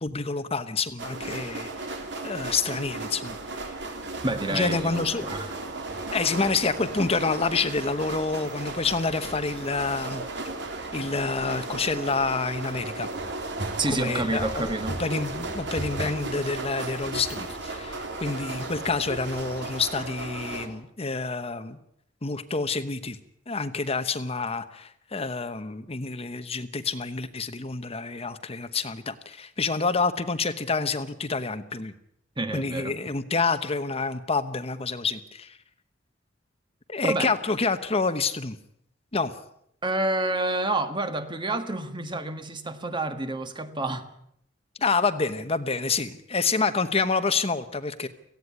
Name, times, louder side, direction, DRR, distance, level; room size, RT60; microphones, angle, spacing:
voice 1, 0.0-3.8 4.5-5.3 6.1-10.2 10.9-13.1 13.9-21.8 22.2-23.2 23.5-31.9 32.5-35.6 36.9-38.6 39.1-39.3 44.8-48.1, left 4 dB, 30° left, 10 dB, 1.0 m, -28 dB
sound 1, 1.0-20.7, right 2 dB, 65° right, 3.3 m, -35 dB
voice 2, 4.2-5.6 13.8-15.0 32.4-33.0 37.0-37.3 39.8-44.1, right 2 dB, 25° right, 9 dB, 1.6 m, -29 dB
18.0 x 16.0 x 9.7 m, 0.74 s
head